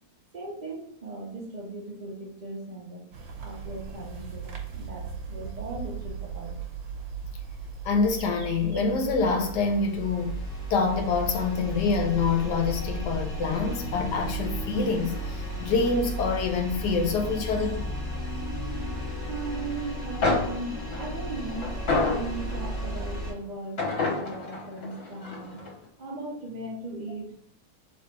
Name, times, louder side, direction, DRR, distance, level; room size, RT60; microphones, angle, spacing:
voice 1, 0.3-3.1 3.4-6.6 19.3-21.8 22.0-25.6 26.0-27.3, right 2 dB, 70° right, 0.4 m, -38 dB
sound 1, 3.1-17.8, right 5 dB, 90° right, 1.6 m, -39 dB
voice 2, 7.8-10.4 10.7-17.8, left 4 dB, 70° left, 1.1 m, -26 dB
sound 2, 8.5-23.3, equal, 15° left, 1.3 m, -35 dB
sound 3, 19.9-20.0 20.2-22.8 23.8-25.7, left 3 dB, 50° left, 1.1 m, -29 dB
3.4 x 3.1 x 4.4 m
omnidirectional pair, 2.1 m